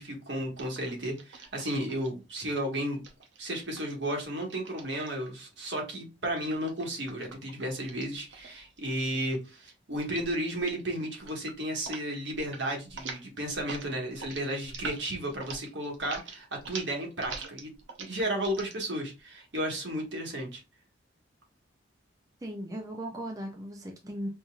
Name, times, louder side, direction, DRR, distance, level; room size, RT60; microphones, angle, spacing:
voice 1, 0.0-3.0 3.4-17.7 18.0-20.6, right 1 dB, 70° right, 1.5 m, -33 dB
sound 1, 0.6-2.1 2.9-5.4 6.4-8.9 9.1-9.5 9.9-10.3 10.6-10.8 11.1-12.0 12.3-12.6 12.9-18.7, right 4 dB, 85° right, 0.8 m, -44 dB
voice 2, 22.4-24.3, right 1 dB, 20° right, 0.5 m, -37 dB
5.4 x 2.8 x 2.3 m
head